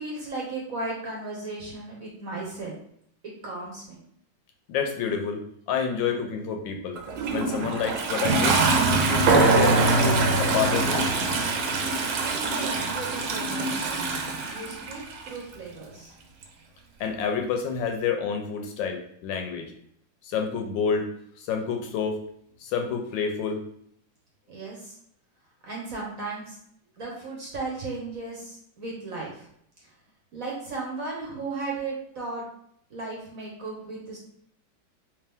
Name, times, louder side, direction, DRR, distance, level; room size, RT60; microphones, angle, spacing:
voice 1, 0.0-2.7 3.2-4.0 12.2-16.1 24.5-25.0 25.6-26.6 27.0-29.5 29.8-29.9 30.3-32.4 32.9-34.2, right 3 dB, 55° right, -3 dB, 1.1 m, -36 dB
voice 2, 4.7-5.4 5.7-7.0 7.3-8.6 8.9-11.1 17.0-19.7 20.2-21.1 21.4-22.2 22.6-23.6, left 6 dB, 75° left, 3 dB, 1.2 m, -28 dB
Toilet flush, 7.0-15.4 16.4-16.5, right 3 dB, 70° right, 1.2 m, -26 dB
sound 1, 9.3-13.2, right 3 dB, 90° right, 1.5 m, -24 dB
3.4 x 3.0 x 3.4 m, 0.69 s
omnidirectional pair, 2.2 m